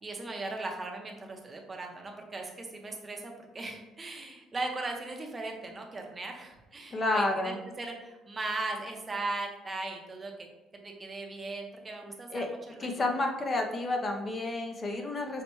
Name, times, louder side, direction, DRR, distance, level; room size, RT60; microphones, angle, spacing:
voice 1, 0.0-10.5 10.8-13.1, right 2 dB, 25° right, 2 dB, 0.6 m, -38 dB
voice 2, 6.9-7.6 12.3-12.5 12.8-15.4, left 2 dB, 30° left, 2 dB, 0.4 m, -30 dB
5.5 x 2.1 x 3.0 m, 1.1 s
cardioid pair, 130°, 0 cm